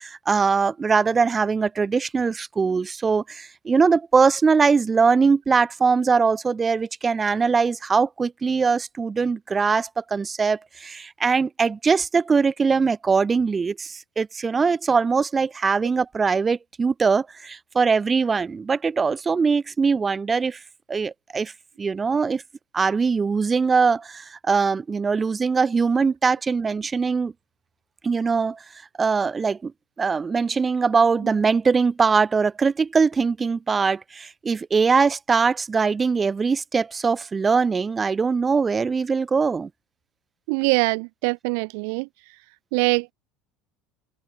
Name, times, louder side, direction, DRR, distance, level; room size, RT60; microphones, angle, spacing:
voice 1, 0.0-20.6 20.9-21.5 21.8-22.4 22.7-27.3 28.0-28.6 29.0-29.7 30.0-39.7, right 5 dB, 20° right, 2.2 m, -21 dB
voice 2, 40.5-42.1 42.7-43.1, right 38 dB, 75° right, 1.0 m, -23 dB
supercardioid pair, 125°, 0 cm